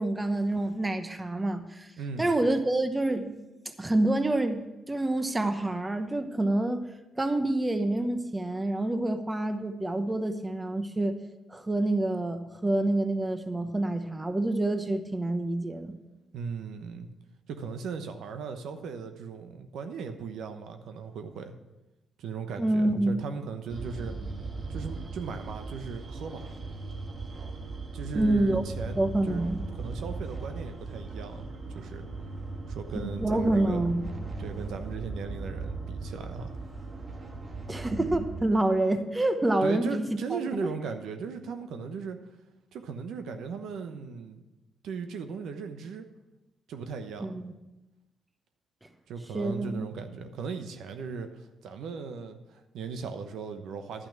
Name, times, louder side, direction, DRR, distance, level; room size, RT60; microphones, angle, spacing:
voice 1, 0.0-1.9 2.2-3.4 3.8-6.9 7.2-11.2 11.5-16.0 22.6-23.1 28.2-28.6 29.0-29.6 33.2-34.0 37.7-40.0 40.3-40.7 47.2-47.5 49.3-49.9, right 1 dB, 15° right, 9 dB, 0.9 m, -27 dB
voice 2, 2.0-2.3 16.3-17.1 17.5-21.5 22.2-24.1 24.7-26.5 27.9-29.4 29.7-32.1 32.7-33.8 34.4-36.5 39.6-42.2 42.7-44.4 44.8-46.1 46.7-47.3 49.1-54.1, right 5 dB, 75° right, 7 dB, 0.9 m, -37 dB
sound 1, 23.7-38.4, right 3 dB, 40° right, 1.3 m, -37 dB
11.0 x 5.9 x 7.3 m, 1.0 s
cardioid pair, 90°, 0 cm